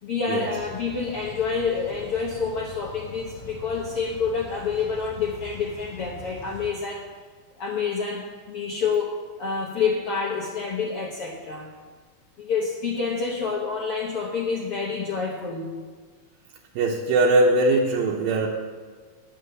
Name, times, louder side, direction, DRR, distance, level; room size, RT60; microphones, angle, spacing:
voice 1, 0.0-7.1 7.6-9.1 9.4-11.7 12.4-15.7, left 5 dB, 65° left, -3 dB, 1.4 m, -28 dB
sound 1, 0.6-6.7, left 2 dB, 40° left, 2.0 m, -43 dB
voice 2, 16.8-18.5, right 2 dB, 85° right, -2 dB, 2.7 m, -20 dB
9.8 x 6.1 x 7.9 m, 1.5 s
omnidirectional pair, 3.9 m